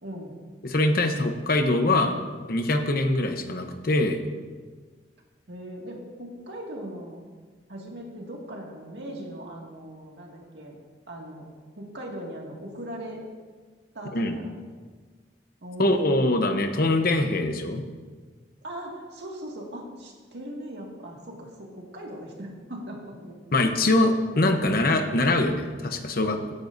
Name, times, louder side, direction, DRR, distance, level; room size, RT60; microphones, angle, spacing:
voice 1, 0.0-0.4 5.5-7.2 7.7-10.8 11.1-11.5 11.8-13.2 13.9-14.5 15.6-16.2 18.6-23.4, right 1 dB, 70° right, -1 dB, 2.1 m, -39 dB
voice 2, 0.6-2.1 2.5-4.2 14.1-14.4 15.8-17.8 23.5-26.5, left 2 dB, 55° left, 6 dB, 0.9 m, -23 dB
16.5 x 9.5 x 2.7 m, 1.5 s
head